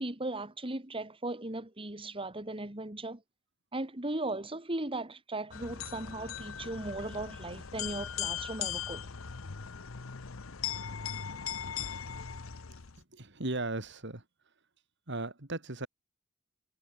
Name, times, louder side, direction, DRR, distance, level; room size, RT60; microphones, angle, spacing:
voice 1, 0.0-3.2 3.7-9.0, right 2 dB, 25° right, 2.1 m, -37 dB
sound 1, 5.5-13.0, left 8 dB, 85° left, 1.0 m, -39 dB
voice 2, 13.1-14.2 15.1-15.9, right 2 dB, 60° right, 3.0 m, -36 dB
head